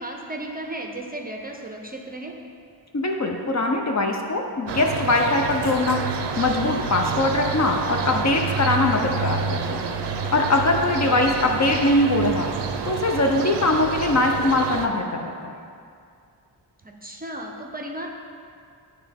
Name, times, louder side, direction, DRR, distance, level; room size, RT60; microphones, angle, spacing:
voice 1, 0.0-2.3 11.0-11.3 16.8-18.1, right 1 dB, 20° right, 1 dB, 0.5 m, -35 dB
voice 2, 2.9-6.0 6.4-9.8 10.3-12.5 12.9-15.5, left 2 dB, 40° left, 2 dB, 0.6 m, -22 dB
sound 1, 4.7-14.9, right 5 dB, 75° right, 0.6 m, -28 dB
9.1 x 3.3 x 3.4 m, 2.3 s
wide cardioid pair, 75°, 43 cm